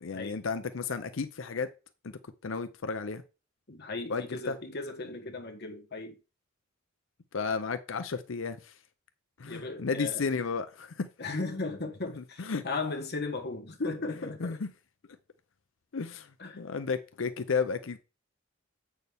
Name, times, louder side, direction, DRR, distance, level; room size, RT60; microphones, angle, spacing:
voice 1, 0.0-1.7 2.0-3.2 4.1-4.5 7.3-8.7 9.4-11.1 12.1-12.6 14.4-14.7 15.9-16.3 16.6-18.0, left 5 dB, 75° left, 0.6 m, -33 dB
voice 2, 3.7-6.2 9.5-10.2 11.2-14.6 16.4-16.6, left 3 dB, 55° left, 1.4 m, -36 dB
8.0 x 6.5 x 3.5 m
head